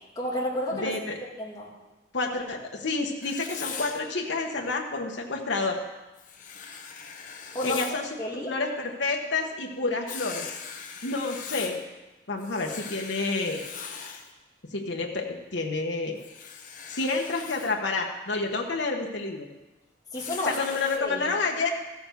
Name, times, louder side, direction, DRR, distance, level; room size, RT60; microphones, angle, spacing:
voice 1, 0.2-0.9 1.4-1.7 7.5-7.8 8.2-8.5 20.1-20.6 21.0-21.3, left 1 dB, 20° left, -4 dB, 2.5 m, -30 dB
voice 2, 0.7-1.2 2.1-5.8 7.6-10.5 11.0-11.8 12.3-13.6 14.7-16.2 16.9-19.5 20.4-21.7, left 3 dB, 90° left, 1 dB, 1.2 m, -29 dB
Writing, 3.2-4.0 6.2-8.0 10.1-11.8 12.4-14.3 16.2-17.7 20.1-21.0, left 6 dB, 50° left, 1.1 m, -40 dB
15.0 x 7.1 x 6.7 m, 1.1 s
head